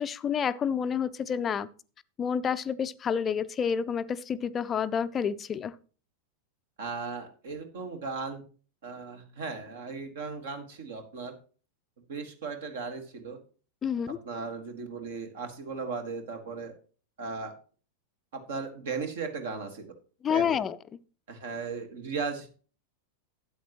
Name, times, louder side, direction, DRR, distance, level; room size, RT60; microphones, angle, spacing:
voice 1, 0.0-1.7 2.2-5.8 13.8-14.2 20.2-20.8, left 7 dB, 25° left, 0.5 m, -29 dB
voice 2, 6.8-8.4 8.8-11.3 12.1-13.4 14.1-16.7 17.2-17.5 18.3-19.9 20.3-20.6 21.3-22.5, right 4 dB, 60° right, 1.7 m, -37 dB
12.5 x 8.6 x 3.0 m
figure-of-eight pair, 90°, 0 cm